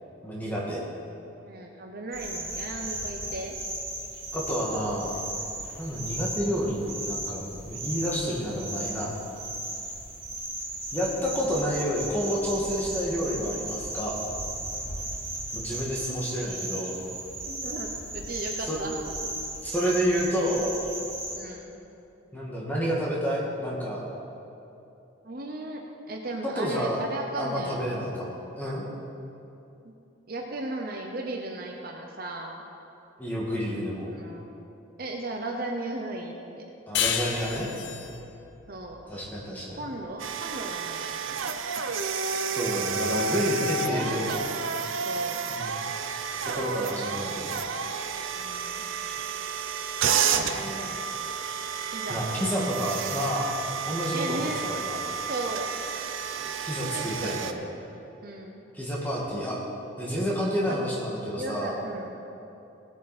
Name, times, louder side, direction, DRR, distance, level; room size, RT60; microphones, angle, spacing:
voice 1, 0.2-0.8 4.3-5.2 5.8-9.1 10.9-14.2 15.5-17.0 18.7-18.8 19.6-20.7 22.3-24.0 26.6-27.0 27.4-28.9 33.2-34.1 36.9-37.7 39.1-39.8 42.5-44.3 45.5-45.7 46.4-47.6 52.1-53.5 53.8-55.0 56.6-57.5 58.7-59.6 60.0-61.7, equal, 10° left, -4 dB, 1.9 m, -29 dB
voice 2, 1.4-3.5 17.4-19.0 21.3-21.8 25.2-28.1 29.8-29.9 30.3-32.6 34.0-34.5 35.0-36.6 38.7-39.0 39.8-41.0 41.4-41.9 43.1-43.5 43.8-44.7 45.1-45.4 48.3-48.9 50.1-51.4 51.9-52.3 54.1-54.6 55.3-55.7 56.8-57.7 58.2-58.7 60.7-60.8 61.3-62.2, right 2 dB, 45° right, 1 dB, 0.9 m, -36 dB
sound 1, 2.1-21.4, right 1 dB, 30° right, 3.1 m, -36 dB
sound 2, 36.9-40.1, left 8 dB, 60° left, 0.7 m, -32 dB
sound 3, 40.2-57.5, right 6 dB, 75° right, 0.6 m, -31 dB
17.5 x 8.2 x 4.3 m, 2.8 s
head